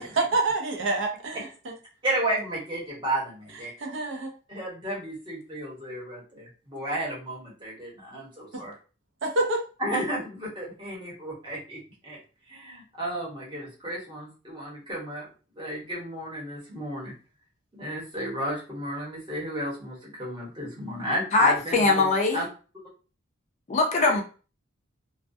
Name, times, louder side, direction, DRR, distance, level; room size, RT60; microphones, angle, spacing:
voice 1, 0.0-1.5 3.8-4.3 9.2-9.6, right 3 dB, 65° right, 2 dB, 0.6 m, -26 dB
voice 2, 2.0-3.7 4.5-8.7 9.8-12.2 12.5-15.3 15.5-17.1 17.8-22.5 24.0-24.2, right 1 dB, 25° right, -4 dB, 0.9 m, -33 dB
voice 3, 21.3-22.4 23.7-24.2, left 3 dB, 35° left, 2 dB, 0.4 m, -21 dB
2.3 x 2.2 x 2.5 m, 0.36 s
head